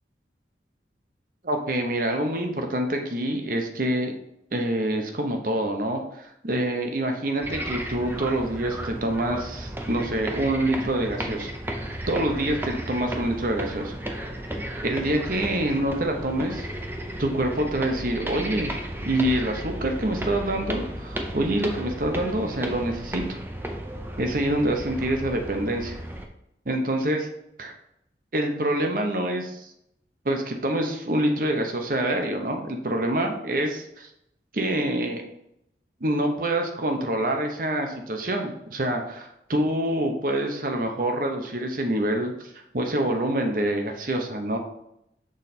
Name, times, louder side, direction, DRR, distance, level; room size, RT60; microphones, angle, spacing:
voice 1, 1.4-4.1 4.5-11.5 12.1-13.9 14.8-16.7 17.2-18.7 19.0-23.4 24.2-26.0 26.7-27.3 27.6-27.7 28.3-29.7 30.2-34.1 34.5-35.2 36.0-42.3 42.7-44.6, right 1 dB, 50° right, 4 dB, 0.8 m, -26 dB
sound 1, 7.4-26.3, right 1 dB, 10° right, 0.5 m, -34 dB
6.3 x 3.9 x 4.2 m, 0.78 s
head